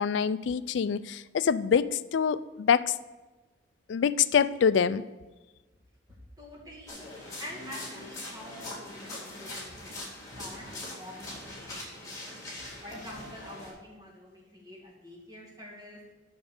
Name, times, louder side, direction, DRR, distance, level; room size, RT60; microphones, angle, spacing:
voice 1, 0.0-2.9 3.9-5.0, left 7 dB, 70° left, 15 dB, 0.3 m, -25 dB
voice 2, 6.4-7.0 7.4-10.0 10.4-16.0, left 1 dB, 20° right, -4 dB, 2.1 m, -47 dB
sound 1, 6.9-13.7, left 1 dB, 15° left, 2.3 m, -42 dB
7.2 x 6.2 x 6.5 m, 1.2 s
head